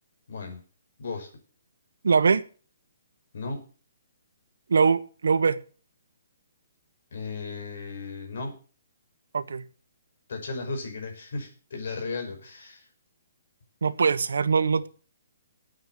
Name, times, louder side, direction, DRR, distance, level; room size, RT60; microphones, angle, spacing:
voice 1, 0.3-0.6 1.0-1.3 3.3-3.6 7.1-8.6 10.3-12.9, left 3 dB, 60° left, 3 dB, 5.6 m, -35 dB
voice 2, 2.0-2.4 4.7-5.6 9.3-9.6 13.8-14.9, right 5 dB, 85° right, 13 dB, 1.2 m, -22 dB
9.3 x 9.0 x 8.3 m, 0.38 s
hypercardioid pair, 170°, 0 cm